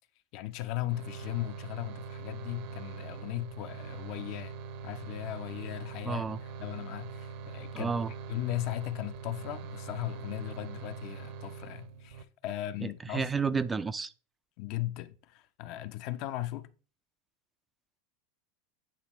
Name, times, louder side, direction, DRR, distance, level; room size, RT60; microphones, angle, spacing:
voice 1, 0.3-4.6 4.8-7.9 8.3-13.6 14.6-16.7, left 15 dB, 50° left, 0.6 m, -37 dB
sound 1, 0.9-12.2, right 5 dB, 60° right, 0.7 m, -43 dB
voice 2, 6.1-6.4 7.7-8.1 12.8-14.1, right 5 dB, 15° right, 0.3 m, -31 dB
8.8 x 2.9 x 4.2 m
supercardioid pair, 145°, 0 cm